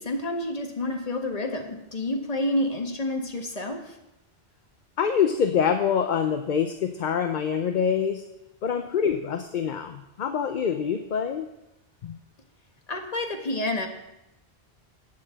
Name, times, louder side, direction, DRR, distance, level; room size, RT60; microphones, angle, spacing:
voice 1, 0.0-3.9 12.9-13.9, left 1 dB, 35° left, 4 dB, 1.3 m, -29 dB
voice 2, 5.0-8.2 8.6-11.5 12.0-12.2, left 7 dB, 50° left, 7 dB, 0.7 m, -25 dB
8.7 x 7.4 x 7.5 m, 0.91 s
omnidirectional pair, 1.1 m